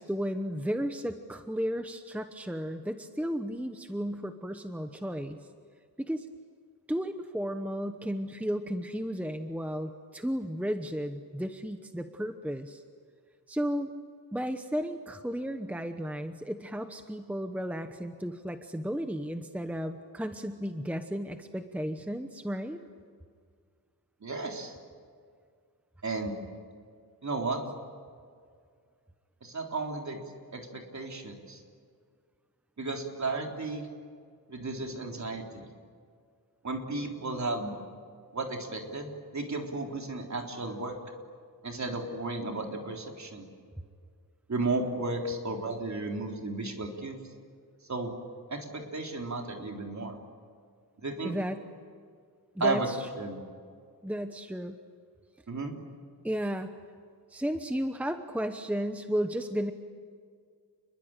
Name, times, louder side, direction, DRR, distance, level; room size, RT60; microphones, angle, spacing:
voice 1, 0.0-5.4 6.0-6.3 6.9-12.8 13.5-13.9 14.3-22.8 51.2-51.6 52.5-53.1 54.0-54.8 56.2-56.8 57.3-59.7, equal, 5° right, 7 dB, 1.0 m, -33 dB
voice 2, 24.2-24.7 26.0-26.4 27.2-27.6 29.4-31.6 32.8-33.9 34.5-35.7 36.6-37.8 38.3-41.0 41.6-43.5 44.5-47.2 47.9-48.2 48.5-50.2 51.0-51.4 52.6-52.9 53.2-53.4 55.5-55.7, right 3 dB, 45° right, 2 dB, 3.8 m, -34 dB
29.0 x 22.0 x 9.0 m, 2.1 s
wide cardioid pair, 150°, 38 cm